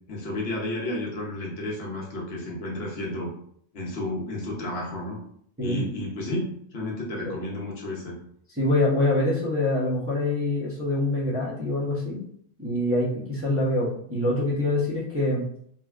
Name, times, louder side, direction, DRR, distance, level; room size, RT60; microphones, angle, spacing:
voice 1, 0.1-3.3 3.7-5.2 5.6-6.5 6.7-8.1, left 1 dB, 60° left, -2 dB, 1.0 m, -32 dB
voice 2, 8.6-12.2 12.6-15.4, left 2 dB, 15° right, -7 dB, 0.6 m, -25 dB
3.2 x 2.4 x 2.3 m, 0.65 s
omnidirectional pair, 1.3 m